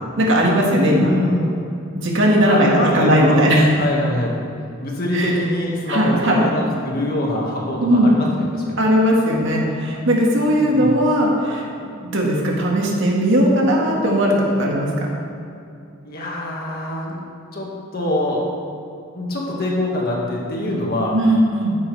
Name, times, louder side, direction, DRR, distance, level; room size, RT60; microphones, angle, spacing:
voice 1, 0.2-1.1 2.0-3.7 5.1-5.3 5.9-6.4 7.8-8.1 8.8-11.7 12.0-15.1 21.1-21.7, equal, 55° right, -2 dB, 1.9 m, -17 dB
voice 2, 0.9-1.6 2.5-3.4 3.8-4.5 4.8-8.6 10.6-10.9 16.0-17.2 17.5-18.4 19.1-21.2, left 1 dB, 45° left, -2 dB, 2.0 m, -24 dB
13.0 x 10.5 x 3.5 m, 2.6 s
head